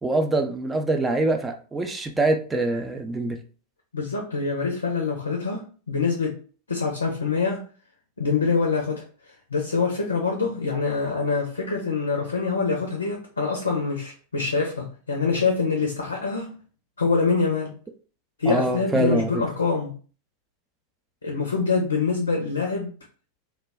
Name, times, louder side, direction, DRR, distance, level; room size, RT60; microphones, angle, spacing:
voice 1, 0.0-3.4 18.5-19.4, right 2 dB, 10° right, 5 dB, 0.3 m, -24 dB
voice 2, 3.9-6.4 6.7-7.6 8.2-9.1 9.5-16.6 17.0-17.7 18.4-19.9 21.2-22.9, left 4 dB, 75° left, 2 dB, 0.5 m, -25 dB
2.2 x 2.1 x 3.4 m, 0.39 s
figure-of-eight pair, 90°, 0 cm